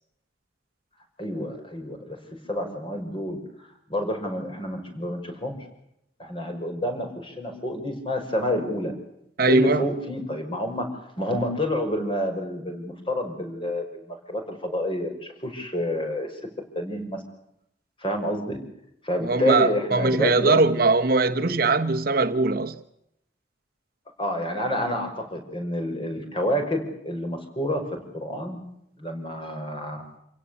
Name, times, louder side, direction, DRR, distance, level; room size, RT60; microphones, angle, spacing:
voice 1, 1.2-2.2 2.5-3.4 3.9-5.6 6.2-8.9 9.4-10.9 11.2-16.3 16.8-17.2 18.0-18.6 19.0-20.6 24.2-27.8 28.1-28.6 29.0-30.0, left 1 dB, 30° left, 6.0 m, -28 dB
voice 2, 9.4-9.8 19.2-22.8, right 3 dB, 55° right, 1.2 m, -21 dB
28.0 x 17.0 x 8.5 m
head